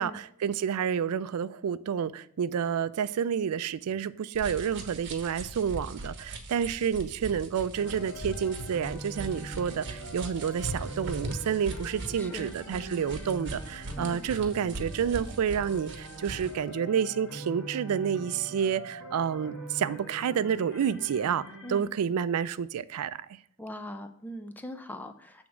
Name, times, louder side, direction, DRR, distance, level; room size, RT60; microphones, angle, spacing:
voice 1, 0.0-21.4 21.7-23.2, right 7 dB, 85° right, 0.4 m, -29 dB
sound 1, 4.3-16.6, right 2 dB, 55° right, 1.1 m, -40 dB
sound 2, 7.7-21.8, right 1 dB, 55° left, 1.4 m, -43 dB
voice 2, 12.2-12.5 14.0-14.3 21.6-21.9 23.6-25.5, left 1 dB, 10° left, 0.4 m, -41 dB
7.9 x 3.5 x 6.1 m
head